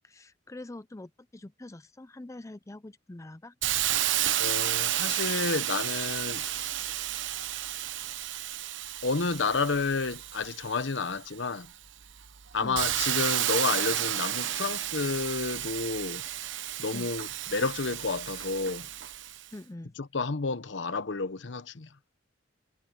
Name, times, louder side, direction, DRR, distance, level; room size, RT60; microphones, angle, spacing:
voice 1, 0.0-3.5 12.6-12.8 16.9-17.1 19.5-20.0, left 2 dB, 15° left, 0.5 m, -44 dB
Hiss, 3.6-11.2 11.7-19.4, right 12 dB, 75° right, 1.0 m, -32 dB
voice 2, 4.4-6.4 9.0-11.7 12.5-16.2 16.8-18.9 20.0-21.9, left 4 dB, 70° left, 0.9 m, -30 dB
head